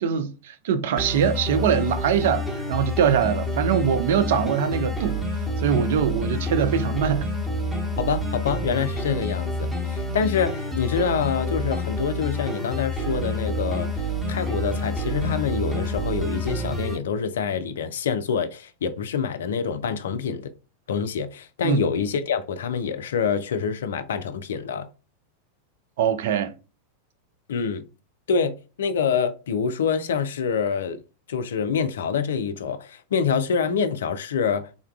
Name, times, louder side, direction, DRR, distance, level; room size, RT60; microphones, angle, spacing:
voice 1, 0.0-5.2 5.6-7.3 21.6-21.8 26.0-26.5, right 8 dB, 55° right, 0.4 m, -23 dB
sound 1, 1.0-17.0, equal, 5° right, 1.0 m, -28 dB
voice 2, 8.0-20.5 20.9-24.9 27.5-27.8 28.3-31.0 31.3-34.7, left 6 dB, 60° left, 0.3 m, -26 dB
3.6 x 2.2 x 2.3 m
figure-of-eight pair, 90°, 0 cm